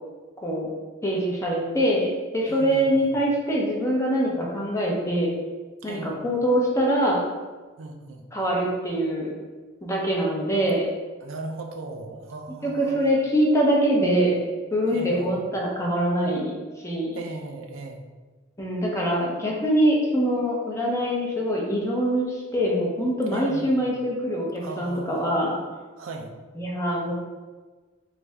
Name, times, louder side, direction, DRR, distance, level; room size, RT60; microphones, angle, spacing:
voice 1, 0.4-0.7 1.0-5.3 5.8-7.2 8.3-9.3 9.8-10.8 12.6-14.4 14.7-16.5 16.8-17.2 18.6-25.6 26.6-27.1, equal, 15° left, -3 dB, 0.6 m, -24 dB
voice 2, 2.5-3.1 5.8-6.3 7.8-8.3 11.2-13.1 14.9-15.4 17.1-18.0 23.3-23.9 24.6-25.3 26.0-26.3, right 3 dB, 70° right, 3 dB, 0.4 m, -38 dB
3.3 x 2.6 x 3.3 m, 1.3 s
head